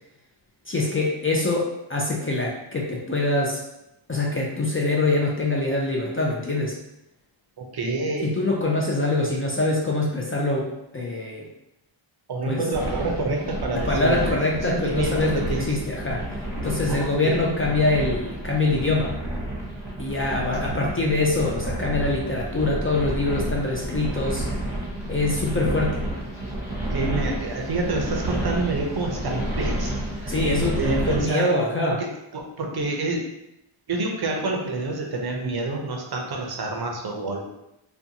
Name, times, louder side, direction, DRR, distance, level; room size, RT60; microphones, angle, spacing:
voice 1, 0.7-3.6 4.1-6.8 8.2-11.5 12.5-12.6 13.7-19.1 20.0-24.4 25.1-26.0 30.3-32.0, left 2 dB, 30° left, -2 dB, 0.3 m, -24 dB
voice 2, 7.6-8.3 12.3-15.7 16.9-17.5 26.9-30.3 30.8-31.5 31.8-32.1 32.3-33.3 33.9-37.5, right 2 dB, 50° right, 1 dB, 0.5 m, -28 dB
sound 1, 12.7-31.2, right 1 dB, 5° right, 0.9 m, -30 dB
2.5 x 2.3 x 2.7 m, 0.87 s
wide cardioid pair, 105°, 49 cm